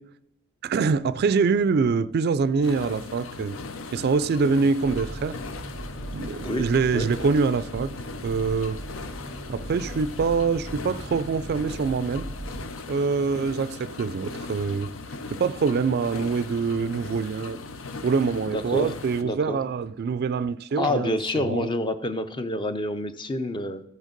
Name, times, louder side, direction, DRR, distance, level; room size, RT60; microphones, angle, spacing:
voice 1, 0.6-3.5 3.9-5.4 6.1-7.9 8.2-8.8 9.5-12.3 12.9-14.9 15.3-17.6 18.0-21.7, right 5 dB, 50° right, 0.3 m, -25 dB
sound 1, 2.6-19.2, left 3 dB, 75° left, 0.7 m, -39 dB
sound 2, 4.8-12.7, right 1 dB, 15° right, 0.6 m, -39 dB
voice 2, 18.5-18.9 19.2-19.6 20.8-23.8, left 1 dB, 25° left, 0.6 m, -28 dB
14.0 x 6.4 x 5.2 m
head